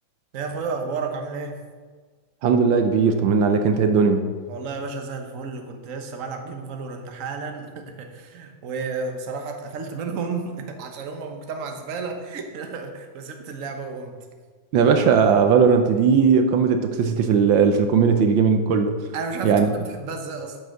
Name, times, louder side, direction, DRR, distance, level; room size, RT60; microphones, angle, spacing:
voice 1, 0.3-1.6 4.5-14.2 19.1-20.6, right 4 dB, 50° right, 4 dB, 1.3 m, -32 dB
voice 2, 2.4-4.2 14.7-18.9 19.4-19.7, right 6 dB, 80° right, 7 dB, 1.5 m, -18 dB
9.0 x 7.0 x 6.5 m, 1.5 s
omnidirectional pair, 2.1 m